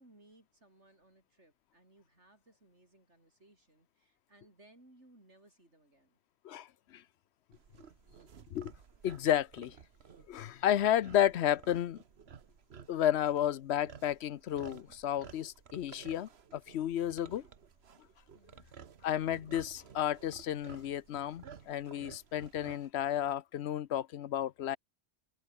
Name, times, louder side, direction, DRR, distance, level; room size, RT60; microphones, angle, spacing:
voice 1, 0.0-6.2 18.3-18.7, right 1 dB, 90° right, 7.2 m, -63 dB
sound 1, 7.5-22.9, right 7 dB, 65° right, 1.4 m, -54 dB
voice 2, 9.0-9.7 10.3-12.0 12.9-17.4 19.0-24.8, left 11 dB, 75° left, 0.9 m, -32 dB
omnidirectional pair, 1.1 m